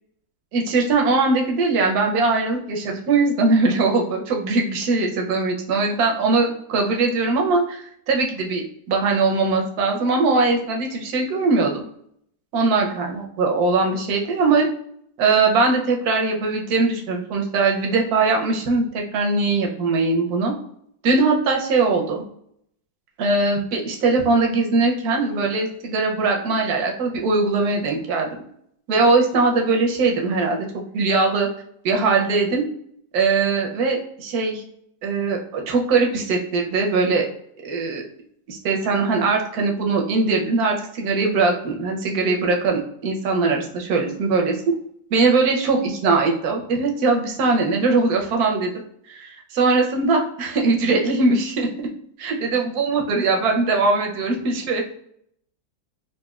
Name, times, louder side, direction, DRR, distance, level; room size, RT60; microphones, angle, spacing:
voice 1, 0.5-11.8 12.5-14.7 15.2-20.5 21.0-22.2 23.2-28.3 28.9-31.5 31.8-32.6 33.1-34.6 35.0-37.3 37.6-38.0 38.5-44.6 45.1-48.7 49.1-51.7 52.2-54.9, right 3 dB, 65° right, 1 dB, 1.0 m, -21 dB
4.1 x 2.5 x 2.3 m, 0.70 s
omnidirectional pair, 2.1 m